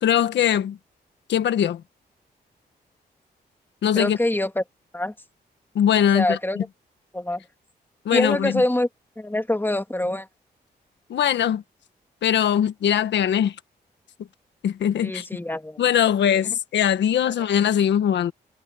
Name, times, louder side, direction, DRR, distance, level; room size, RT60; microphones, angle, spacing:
voice 1, 0.0-0.8 1.3-1.8 3.8-4.2 5.7-6.6 8.0-8.6 11.1-11.6 12.2-13.5 14.6-15.2 15.8-18.3, left 9 dB, 85° left, 1.4 m, -21 dB
voice 2, 4.0-4.6 4.9-5.1 6.1-6.7 7.1-7.4 8.1-8.9 9.2-10.3 15.0-15.8, left 1 dB, 10° left, 2.3 m, -25 dB
cardioid pair, 55°, 18 cm